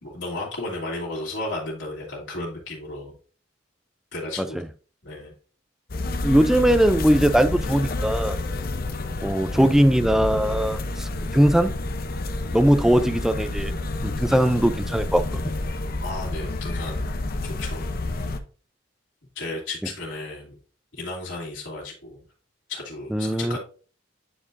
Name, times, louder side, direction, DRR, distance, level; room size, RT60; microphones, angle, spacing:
voice 1, 0.0-3.1 4.1-4.6 5.0-5.3 16.0-17.1 17.4-17.8 18.2-18.4 19.3-20.6 20.9-22.2 22.7-23.6, left 2 dB, 75° left, 2.6 m, -34 dB
sound 1, 5.9-18.4, left 2 dB, 50° left, 0.7 m, -29 dB
voice 2, 6.2-8.4 9.2-11.7 12.5-13.7 14.0-15.4 23.1-23.6, equal, ahead, 0.4 m, -20 dB
10.0 x 4.3 x 2.6 m
head